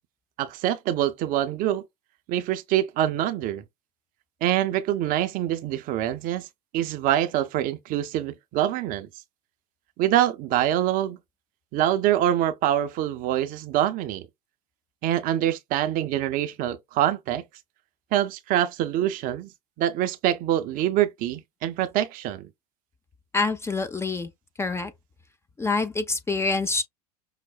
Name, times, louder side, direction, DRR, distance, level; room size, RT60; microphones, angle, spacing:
voice 1, 0.4-1.8 2.3-3.6 4.4-6.5 6.7-9.1 10.0-11.2 11.7-14.3 15.0-17.4 18.1-19.5 19.8-22.5, right 12 dB, 45° right, 0.6 m, -25 dB
voice 2, 23.3-24.3 24.6-24.9 25.6-26.8, left 3 dB, 15° left, 0.5 m, -26 dB
5.6 x 2.1 x 2.3 m
hypercardioid pair, 85°, 21 cm